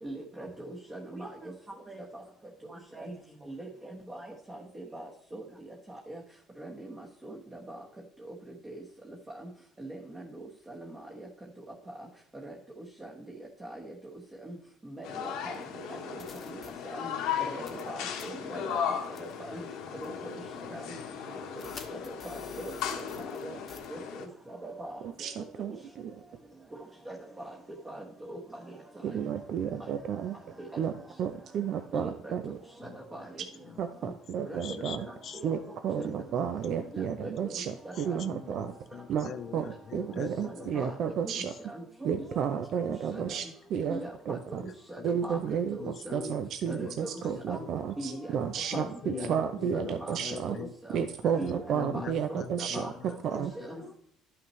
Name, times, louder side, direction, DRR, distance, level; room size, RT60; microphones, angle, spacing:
voice 1, 0.0-1.5 1.9-2.2 2.9-3.1 3.5-5.4 5.9-6.2 6.6-7.4 7.7-7.8 8.6-8.8 9.4-9.5 9.8-10.9 12.4-12.5 13.0-13.3 13.6-13.9 14.4-14.6 14.8-15.3 15.9-16.1 16.5-16.6 16.9-17.1 17.4-18.9 19.2-19.6 20.0-20.4 20.7-21.0 21.9-22.0 22.2-23.0 23.4-23.6 23.9-24.0 24.5-25.3 27.1-27.5 27.8-28.4 28.6-28.7 29.1-29.2 30.6-30.7 31.9-32.3 32.8-33.2 34.0-34.1 34.4-34.6 35.0-35.1 35.4-35.5 36.0-36.1 36.9-38.2 40.4-40.9 41.2-42.3 42.8-42.9 43.3-43.4 43.9-45.4 45.8-46.3 46.7-47.1 47.5-47.6 48.0-48.3 48.7-49.3 49.7-50.2 50.5-51.0 51.4-52.9 53.3-53.8, right 1 dB, 15° right, -2 dB, 1.2 m, -41 dB
sound 1, 15.0-24.3, left 8 dB, 75° left, 1.3 m, -36 dB
sound 2, 15.5-15.6 16.2-16.7 17.7-17.9 18.2-18.3 19.2-19.3 20.0-20.1 21.6-23.4 23.7-23.9, left 5 dB, 25° left, 1.0 m, -48 dB
voice 2, 25.0-25.7 26.0-26.1 29.0-30.4 30.8-30.9 31.2-32.6 33.8-35.1 35.4-38.7 39.1-41.5 42.0-43.5 43.7-44.0 44.3-44.6 45.0-50.6 50.9-52.9 53.2-53.5, right 8 dB, 50° right, 8 dB, 0.6 m, -32 dB
voice 3, 34.4-35.4 36.1-36.2 36.7-37.5 38.0-40.9 43.1-43.3 43.7-43.9 45.0-45.2 45.8-47.0 47.2-47.7 48.0-48.2 48.7-51.3 51.7-53.9, left 8 dB, 45° left, 10 dB, 0.6 m, -43 dB
12.0 x 5.8 x 3.1 m, 0.67 s
cardioid pair, 140°, 0 cm